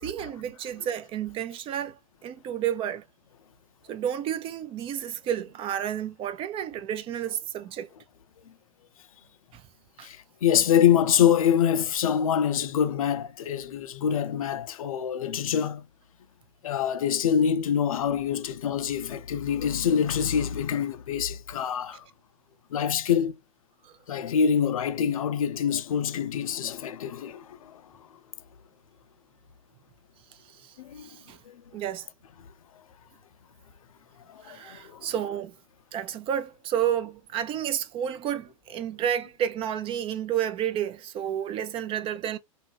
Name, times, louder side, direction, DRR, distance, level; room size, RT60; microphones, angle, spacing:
voice 1, 0.0-3.0 3.9-7.9 9.5-9.6 10.0-10.1 21.9-22.0 23.8-23.9 30.6-30.7 31.0-31.4 31.7-32.1 34.4-35.5 35.9-42.4, right 10 dB, 30° right, 0.5 m, -31 dB
voice 2, 10.0-15.9 16.6-22.0 22.7-23.3 24.1-27.8 30.8-31.1 34.3-35.1, left 8 dB, 75° left, 0.5 m, -25 dB
2.6 x 2.4 x 3.0 m
hypercardioid pair, 105°, 18 cm